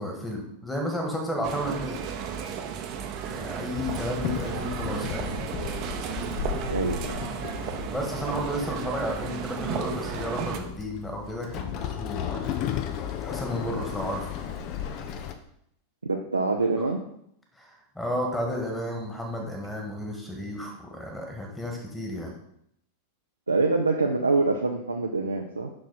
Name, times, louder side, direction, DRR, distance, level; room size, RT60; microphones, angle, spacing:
voice 1, 0.0-2.0 3.2-5.5 7.6-12.6 13.2-14.4 17.6-22.3, equal, 10° left, 2 dB, 1.9 m, -32 dB
sound 1, 1.4-10.6, right 8 dB, 40° right, 0.9 m, -34 dB
Walk footsteps / Chatter / Hiss, 3.7-15.3, left 8 dB, 40° left, 0.8 m, -35 dB
voice 2, 6.7-7.2 16.0-17.0 23.5-25.7, right 3 dB, 80° right, 2 dB, 0.6 m, -25 dB
6.4 x 6.2 x 4.3 m, 0.73 s
figure-of-eight pair, 90°, 0 cm